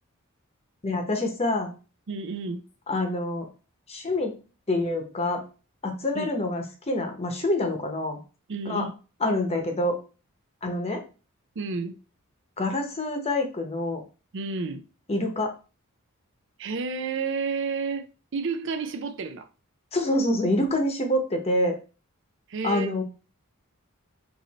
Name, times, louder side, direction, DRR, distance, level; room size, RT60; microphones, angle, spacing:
voice 1, 0.8-1.7 2.9-3.5 3.9-4.3 4.7-5.4 5.8-8.2 8.7-8.9 9.2-10.0 10.6-11.0 12.6-14.0 15.1-15.5 19.9-21.8 22.6-23.0, left 1 dB, 30° left, 0.9 m, -26 dB
voice 2, 2.1-2.6 6.1-6.3 8.5-8.9 11.6-12.0 14.3-14.8 16.6-18.1 18.3-19.5 22.5-22.9, right 4 dB, 60° right, 0.5 m, -30 dB
4.7 x 2.6 x 4.1 m
head